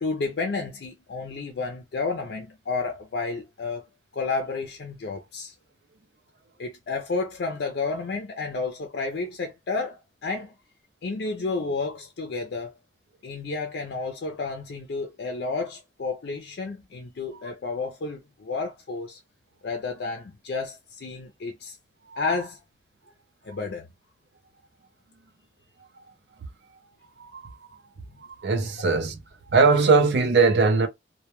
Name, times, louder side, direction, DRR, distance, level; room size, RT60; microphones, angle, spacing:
voice 1, 0.0-3.8 4.1-5.5 6.6-10.5 11.0-12.8 13.2-19.2 19.6-21.8 22.2-22.6 23.4-23.9, left 4 dB, 65° left, 0.4 m, -31 dB
voice 2, 27.2-27.5 28.2-29.2 29.5-30.9, right 4 dB, 75° right, 0.6 m, -20 dB
2.2 x 2.1 x 2.9 m
head